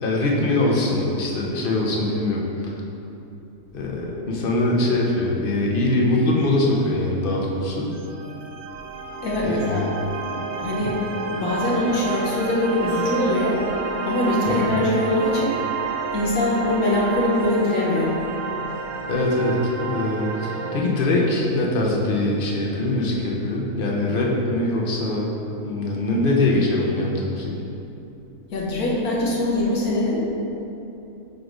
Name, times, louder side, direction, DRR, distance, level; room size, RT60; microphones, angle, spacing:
voice 1, 0.0-2.7 3.7-7.9 9.4-9.9 10.8-10.9 14.5-14.8 19.1-25.3 25.6-27.5, left 2 dB, 45° left, -2 dB, 0.8 m, -22 dB
sound 1, 7.9-20.8, right 5 dB, 85° right, 1.1 m, -30 dB
voice 2, 9.2-10.0 10.6-11.0 11.3-13.6 14.0-15.6 16.1-18.2 28.5-30.3, left 1 dB, 80° left, -5 dB, 1.4 m, -22 dB
4.6 x 4.1 x 5.0 m, 2.9 s
omnidirectional pair, 1.5 m